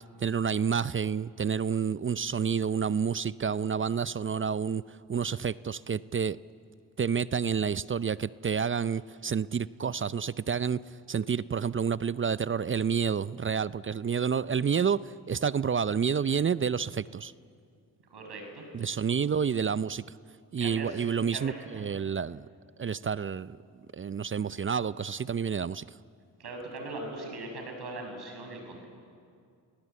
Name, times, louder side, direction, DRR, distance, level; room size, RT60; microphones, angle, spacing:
voice 1, 0.2-6.4 7.0-10.8 11.1-17.3 18.7-20.2 20.5-22.5 22.8-23.6 23.9-25.9, right 6 dB, 30° right, 0.5 m, -29 dB
voice 2, 18.1-18.6 20.6-21.8 26.4-28.9, right 2 dB, 60° right, 7.0 m, -40 dB
29.0 x 18.0 x 8.3 m
supercardioid pair, 50°, 45 cm